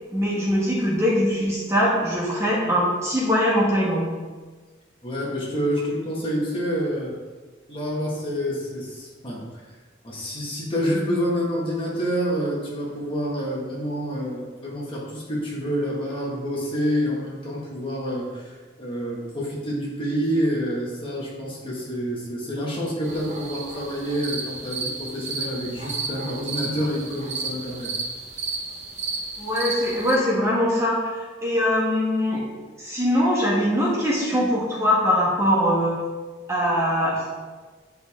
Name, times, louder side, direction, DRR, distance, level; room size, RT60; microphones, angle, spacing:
voice 1, 0.1-4.1 29.4-32.4 32.8-36.0 36.5-37.3, equal, 15° right, -5 dB, 1.4 m, -22 dB
voice 2, 5.0-7.2 7.7-9.7 10.0-27.9, equal, 30° left, -4 dB, 1.8 m, -28 dB
sound 1, 23.0-30.1, right 3 dB, 40° right, 1.1 m, -33 dB
9.6 x 4.8 x 3.7 m, 1.4 s
head